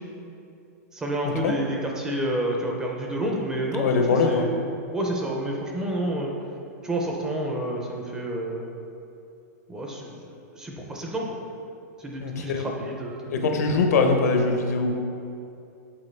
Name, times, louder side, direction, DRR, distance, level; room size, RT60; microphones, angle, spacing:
voice 1, 0.9-4.5 4.9-6.3 6.8-8.7 9.7-10.2 10.5-11.4 12.0-13.5, right 1 dB, 5° right, -1 dB, 0.4 m, -29 dB
voice 2, 3.7-4.5 12.2-12.7 13.3-15.0, left 4 dB, 75° left, 4 dB, 0.7 m, -22 dB
7.4 x 4.5 x 3.2 m, 2.6 s
supercardioid pair, 175°, 9 cm